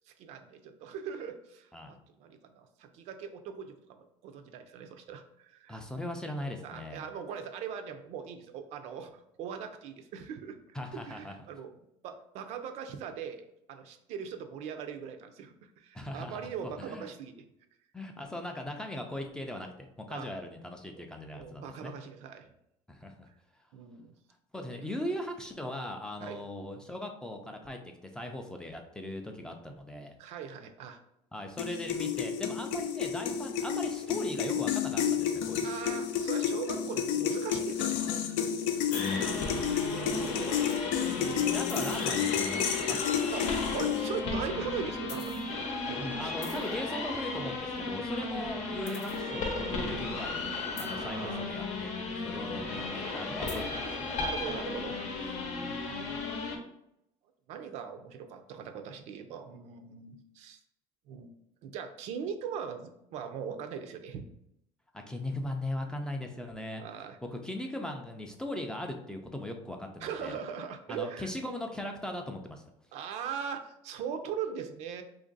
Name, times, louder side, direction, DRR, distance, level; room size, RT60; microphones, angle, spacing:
voice 1, 0.1-5.8 6.6-10.6 10.9-17.4 20.1-20.3 20.9-21.1 21.3-22.5 23.7-24.1 24.6-24.8 26.2-26.4 30.2-31.0 35.6-38.6 39.5-40.7 41.1-41.6 43.3-46.3 48.1-48.3 48.8-49.0 51.0-51.4 54.2-56.2 57.5-60.6 61.1-61.3 61.6-64.2 66.7-67.2 70.0-71.3 72.9-75.0, right 7 dB, 65° right, 7 dB, 0.4 m, -41 dB
voice 2, 5.7-7.0 10.7-11.3 15.9-17.1 17.9-21.9 22.9-23.3 24.5-27.8 28.1-30.1 31.3-35.7 38.9-39.7 41.5-43.0 45.9-50.5 50.8-54.2 64.9-66.8 67.3-70.4 70.9-72.6, left 1 dB, 5° left, 3 dB, 0.3 m, -39 dB
sound 1, 31.6-44.2, left 8 dB, 90° left, 0.4 m, -31 dB
sound 2, 38.9-56.6, left 3 dB, 70° left, 0.8 m, -35 dB
2.9 x 2.5 x 3.9 m, 0.80 s
cardioid pair, 135°, 12 cm